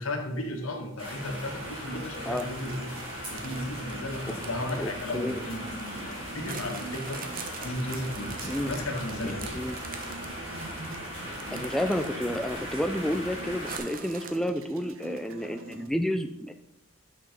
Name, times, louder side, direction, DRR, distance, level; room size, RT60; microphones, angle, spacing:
voice 1, 0.0-2.9 3.3-7.2 7.6-9.6, left 1 dB, 75° left, 3 dB, 1.6 m, -35 dB
sound 1, 1.0-13.8, equal, 25° right, 3.5 m, -38 dB
sound 2, 1.4-15.9, right 2 dB, 70° right, 0.8 m, -45 dB
sound 3, 2.1-5.9 6.5-12.6 12.9-13.0 13.7-14.3, right 5 dB, 40° right, 1.0 m, -44 dB
voice 2, 4.7-5.4 8.4-8.7 9.5-9.8 11.5-16.5, equal, ahead, 7 dB, 0.3 m, -30 dB
9.3 x 6.0 x 5.2 m, 0.83 s
head